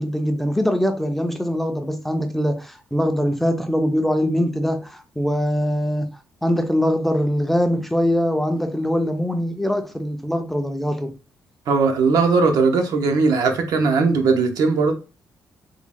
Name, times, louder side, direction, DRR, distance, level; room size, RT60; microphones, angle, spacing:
voice 1, 0.0-6.1 6.4-11.1, equal, 5° left, 0.4 m, -22 dB
voice 2, 11.7-14.9, right 4 dB, 85° right, 0.7 m, -18 dB
3.5 x 2.1 x 3.6 m
cardioid pair, 140°, 6 cm